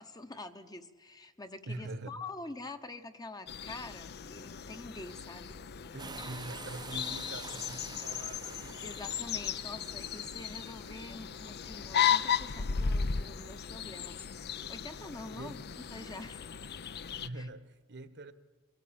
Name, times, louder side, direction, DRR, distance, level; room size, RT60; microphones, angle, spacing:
voice 1, 0.0-5.6 8.8-14.2 14.5-16.5 17.3-17.5, left 2 dB, 20° left, 8 dB, 1.0 m, -46 dB
voice 2, 1.7-2.1 5.9-8.8 15.3-15.6 17.2-18.3, right 2 dB, 55° right, 13 dB, 1.2 m, -44 dB
sound 1, 3.5-17.3, left 7 dB, 50° left, 0.6 m, -36 dB
sound 2, 5.2-8.5, left 5 dB, 80° left, 6.9 m, -66 dB
sound 3, 6.0-11.1, right 5 dB, 20° right, 0.7 m, -48 dB
24.0 x 17.5 x 8.8 m, 1.3 s
head